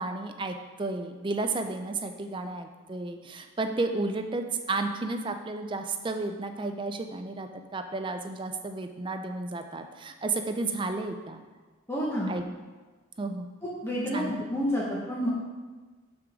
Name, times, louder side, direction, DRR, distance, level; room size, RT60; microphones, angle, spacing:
voice 1, 0.0-11.4 12.3-12.4 13.2-13.5 14.1-14.4, right 3 dB, 25° right, 6 dB, 0.4 m, -32 dB
voice 2, 11.9-12.3 13.8-15.3, equal, 15° left, -6 dB, 0.9 m, -29 dB
6.1 x 3.8 x 6.0 m, 1.3 s
head